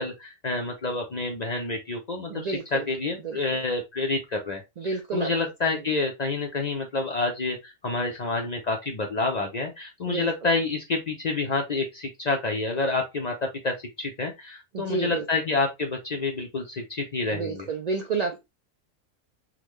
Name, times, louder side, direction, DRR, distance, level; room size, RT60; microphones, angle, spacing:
voice 1, 0.0-17.7, left 3 dB, 55° left, 2 dB, 0.5 m, -28 dB
voice 2, 2.3-2.8 3.2-3.4 4.8-5.3 5.7-5.8 10.0-10.3 14.7-15.2 17.3-18.4, right 4 dB, 80° right, 4 dB, 0.3 m, -30 dB
3.6 x 2.1 x 3.0 m, 0.22 s
omnidirectional pair, 1.3 m